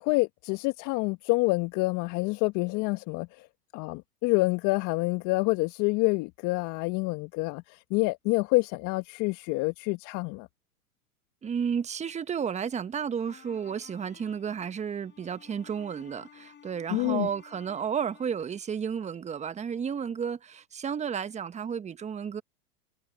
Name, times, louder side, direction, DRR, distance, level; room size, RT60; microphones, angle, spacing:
voice 1, 0.0-3.5 3.7-10.5 16.9-17.3, left 25 dB, 40° left, 1.6 m, -27 dB
voice 2, 11.4-22.4, right 7 dB, 15° right, 1.2 m, -32 dB
sound 1, 13.2-18.5, left 8 dB, 20° left, 6.1 m, -55 dB
hypercardioid pair, 105°, 46 cm